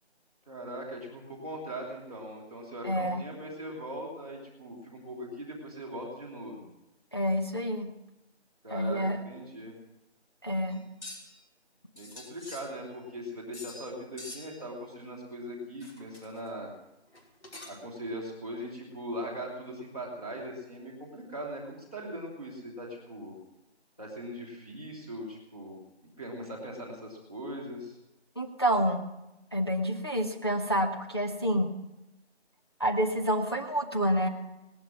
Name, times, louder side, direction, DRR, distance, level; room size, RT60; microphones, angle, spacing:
voice 1, 0.5-6.7 8.6-9.7 11.9-16.7 17.6-23.4 24.0-25.8 26.2-28.0, equal, 5° left, -7 dB, 1.5 m, -40 dB
voice 2, 2.8-3.2 7.1-7.9 8.7-9.2 10.4-10.8 28.4-29.0 29.5-31.7 32.8-34.3, equal, 25° left, 1 dB, 0.9 m, -28 dB
sound 1, 10.7-11.4 12.0-13.1 13.5-13.9 14.2-14.7 15.8-16.5 17.1-18.0, left 2 dB, 80° left, 5.4 m, -46 dB
18.0 x 11.5 x 6.2 m, 0.94 s
figure-of-eight pair, 175°, 34 cm